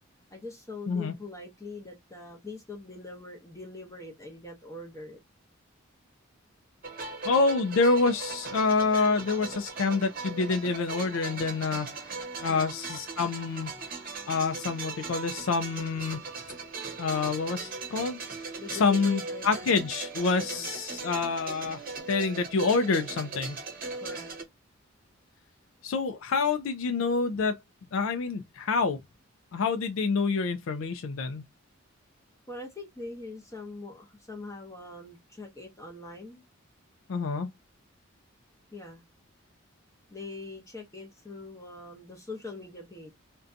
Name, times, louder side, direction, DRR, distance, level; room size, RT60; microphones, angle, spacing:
voice 1, 0.3-5.2 12.5-12.7 13.7-14.3 18.6-19.7 20.4-20.7 23.9-24.3 32.5-36.4 38.7-39.0 40.1-43.1, left 3 dB, 15° left, 0.6 m, -43 dB
sound 1, 6.8-24.4, right 4 dB, 45° right, 0.8 m, -39 dB
voice 2, 7.2-12.1 12.4-13.7 14.3-16.2 17.0-23.6 25.8-27.6 27.9-29.0 29.5-31.4 37.1-37.5, left 4 dB, 70° left, 0.4 m, -27 dB
2.5 x 2.2 x 2.5 m
head